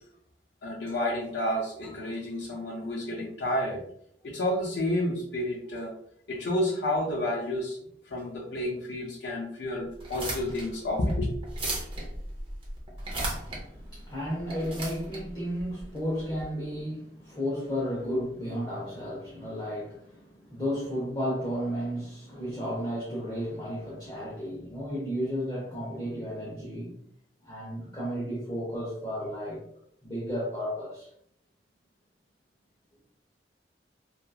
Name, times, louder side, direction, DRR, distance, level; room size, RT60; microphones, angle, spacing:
voice 1, 0.6-3.8 4.2-5.9 6.3-7.8 8.1-11.3, left 1 dB, 80° left, -3 dB, 0.5 m, -30 dB
sound 1, 9.9-16.4, right 1 dB, 30° right, 0.6 m, -36 dB
voice 2, 13.3-27.0 27.4-29.6 30.0-31.1, equal, 20° left, -7 dB, 0.6 m, -33 dB
2.8 x 2.4 x 2.2 m, 0.70 s
head